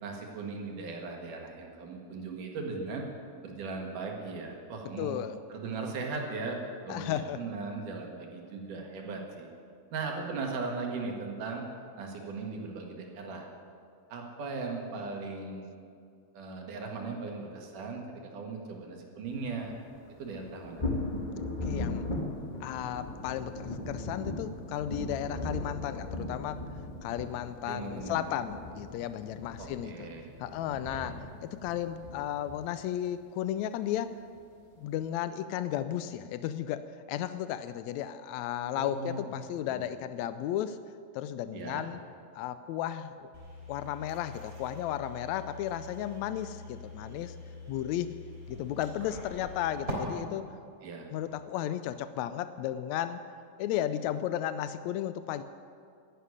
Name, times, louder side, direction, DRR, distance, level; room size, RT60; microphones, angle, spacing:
voice 1, 0.0-3.1 3.4-5.2 5.5-6.6 6.8-9.5 9.9-11.6 12.0-13.5 14.1-15.7 16.3-19.7 20.2-20.8 27.6-28.3 29.6-30.3 30.9-31.1 38.7-39.3 39.7-39.9 41.5-41.8 50.8-51.1, right 4 dB, 70° right, 1 dB, 3.3 m, -38 dB
voice 2, 5.0-5.4 6.9-7.4 21.6-22.1 22.6-26.7 27.0-30.1 30.4-34.2 34.8-40.8 41.1-42.0 42.3-43.3 43.7-47.4 47.7-48.2 48.5-50.6 51.1-53.2 53.6-55.4, left 11 dB, 90° left, 12 dB, 1.6 m, -34 dB
sound 1, 19.5-33.2 34.3-34.4 35.0-35.1, left 2 dB, 35° left, 0.7 m, -38 dB
sound 2, 43.3-49.9, left 2 dB, 20° right, 3.3 m, -44 dB
11.5 x 11.5 x 9.7 m, 2.3 s
omnidirectional pair, 3.8 m